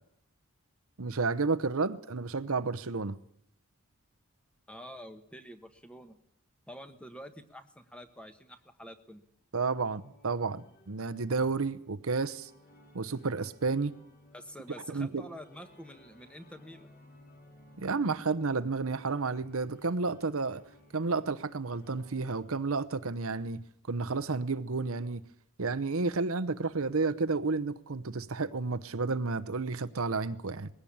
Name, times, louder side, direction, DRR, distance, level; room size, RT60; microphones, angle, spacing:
voice 1, 1.0-3.2 9.5-12.5 12.9-13.9 14.9-15.3 17.8-20.6 20.9-25.2 25.6-30.7, right 4 dB, 70° right, 0.9 m, -31 dB
voice 2, 4.7-6.2 6.7-9.2 14.3-16.9, equal, 5° left, 1.2 m, -47 dB
sound 1, 9.9-22.4, left 1 dB, 40° left, 3.7 m, -59 dB
20.5 x 16.5 x 8.7 m
head